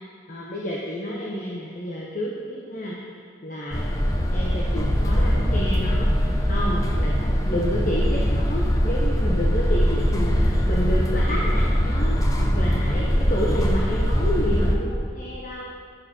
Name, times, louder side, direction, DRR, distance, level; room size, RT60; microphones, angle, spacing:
voice 1, 0.3-3.9 4.3-6.1 6.5-15.7, equal, 40° left, -4 dB, 1.1 m, -30 dB
sound 1, 3.7-14.8, equal, 20° left, 0.9 m, -22 dB
11.0 x 10.5 x 4.5 m, 2.2 s
head